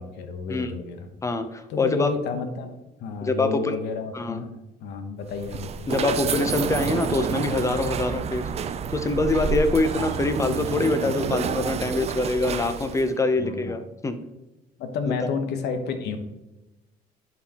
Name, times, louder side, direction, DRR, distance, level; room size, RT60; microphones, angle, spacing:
voice 1, 0.0-1.1 1.7-5.9 13.4-13.8 14.8-16.2, left 5 dB, 80° left, 7 dB, 1.0 m, -31 dB
voice 2, 1.2-2.1 3.2-3.7 4.1-4.4 5.9-8.5 8.9-14.2, left 2 dB, 20° left, 9 dB, 0.7 m, -24 dB
sound 1, 5.3-13.1, right 7 dB, 40° right, 0.4 m, -29 dB
10.5 x 4.4 x 2.9 m, 1.0 s
cardioid pair, 110°, 17 cm